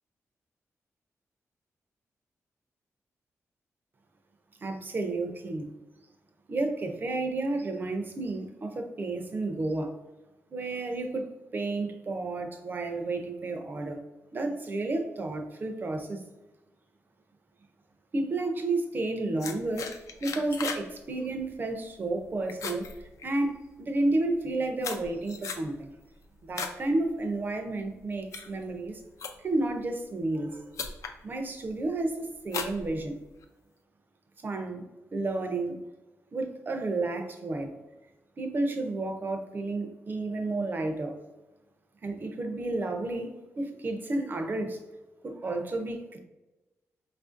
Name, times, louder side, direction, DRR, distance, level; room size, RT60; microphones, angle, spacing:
voice 1, 4.6-5.7 6.5-10.0 10.5-11.3 11.5-14.0 14.3-16.2 18.1-19.9 20.2-22.9 23.2-26.0 26.5-29.0 29.4-30.6 31.2-33.2 34.4-34.8 35.1-35.8 36.3-37.8 38.4-41.2 42.0-44.8 45.2-46.2, right 2 dB, 35° right, 6 dB, 0.5 m, -31 dB
sound 1, 19.4-20.9 21.2-21.5 21.9-22.2 22.5-23.7 24.3-26.8 27.2-27.6 28.1-29.7 30.4-30.5 30.7-31.2 31.7-32.0 32.5-33.5, left 5 dB, 75° left, 0.4 m, -37 dB
4.9 x 2.4 x 2.5 m, 1.1 s
wide cardioid pair, 135°, 5 cm